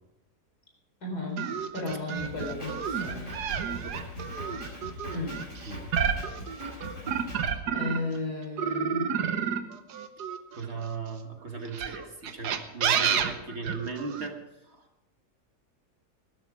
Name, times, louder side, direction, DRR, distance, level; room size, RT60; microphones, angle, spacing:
voice 1, 1.0-3.3 5.1-5.4 7.7-9.1, left 2 dB, 70° left, 0 dB, 5.1 m, -34 dB
sound 1, 1.4-8.2 8.6-11.0 11.7-14.3, right 7 dB, 85° right, 1.6 m, -30 dB
Drum kit, 2.2-7.5, left 1 dB, 55° left, 5.8 m, -42 dB
voice 2, 3.5-4.0 5.7-5.8 10.5-14.4 14.7-14.8, right 4 dB, 45° right, 4 dB, 1.6 m, -37 dB
17.0 x 13.0 x 4.9 m, 0.96 s
omnidirectional pair, 1.7 m